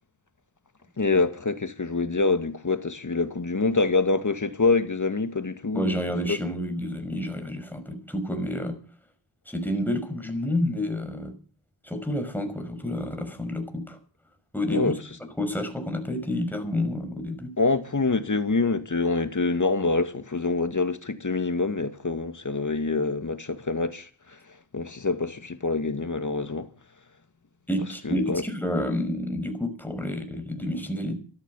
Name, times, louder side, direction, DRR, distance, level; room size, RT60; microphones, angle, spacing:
voice 1, 1.0-6.0 6.2-6.4 14.7-15.0 17.6-24.4 24.7-26.7 28.0-28.4, left 3 dB, 40° left, 2.2 m, -26 dB
voice 2, 5.7-8.8 9.5-11.4 11.8-14.0 14.5-14.9 15.4-17.5 27.7-31.1, left 1 dB, 5° left, 5.7 m, -29 dB
14.0 x 13.0 x 7.3 m
cardioid pair, 55°, 47 cm